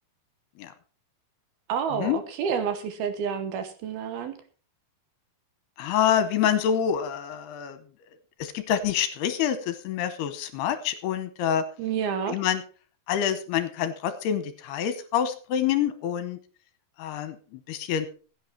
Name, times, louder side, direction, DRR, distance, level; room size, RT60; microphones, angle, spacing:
voice 1, 1.7-4.4 11.8-12.4, right 7 dB, 70° right, 9 dB, 2.8 m, -29 dB
voice 2, 5.8-7.8 8.4-11.6 12.3-12.6 13.1-16.4 17.0-17.4 17.7-18.1, left 9 dB, 75° left, 11 dB, 2.8 m, -26 dB
16.0 x 9.1 x 4.5 m, 0.38 s
omnidirectional pair, 5.0 m